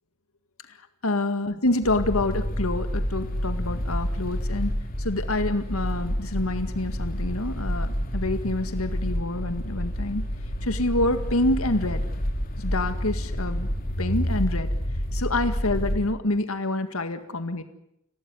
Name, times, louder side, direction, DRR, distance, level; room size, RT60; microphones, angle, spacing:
voice 1, 1.0-4.7 5.0-10.2 10.6-12.0 12.6-13.7 14.0-14.7 15.1-17.6, left 2 dB, 80° left, 8 dB, 2.0 m, -27 dB
sound 1, 1.8-16.1, equal, 45° left, 3.2 m, -29 dB
28.5 x 17.5 x 9.9 m, 0.81 s
head